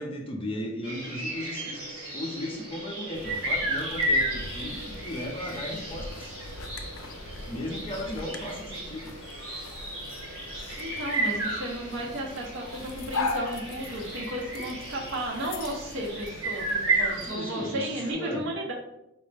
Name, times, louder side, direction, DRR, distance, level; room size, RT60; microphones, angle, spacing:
voice 1, 0.0-1.8 2.1-6.3 7.4-9.1 17.1-18.5, left 1 dB, 25° left, 0 dB, 0.6 m, -36 dB
sound 1, 0.8-18.1, right 2 dB, 85° right, 1.4 m, -33 dB
sound 2, 3.1-17.4, left 3 dB, 75° left, 0.4 m, -40 dB
voice 2, 10.8-18.7, right 1 dB, 60° right, -1 dB, 0.7 m, -34 dB
4.6 x 2.1 x 3.2 m, 0.85 s
head